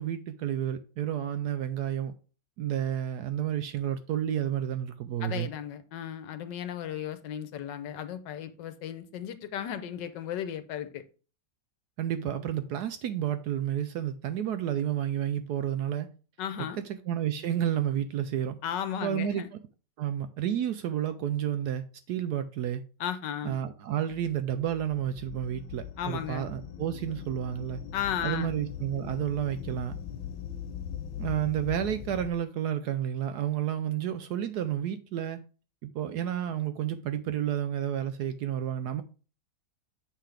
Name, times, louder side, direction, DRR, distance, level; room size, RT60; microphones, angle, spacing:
voice 1, 0.0-2.1 2.6-5.5 12.0-16.1 16.6-16.7 17.1-18.6 19.0-19.4 20.0-22.8 23.4-27.8 28.2-30.0 31.2-35.4 35.8-39.0, right 10 dB, 70° right, 1.0 m, -31 dB
voice 2, 5.2-11.0 16.4-16.8 18.6-19.5 23.0-23.6 26.0-26.5 27.9-28.5, left 9 dB, 75° left, 1.3 m, -35 dB
sound 1, 24.1-32.3, left 9 dB, 90° left, 1.4 m, -41 dB
7.4 x 5.8 x 3.3 m
omnidirectional pair, 2.0 m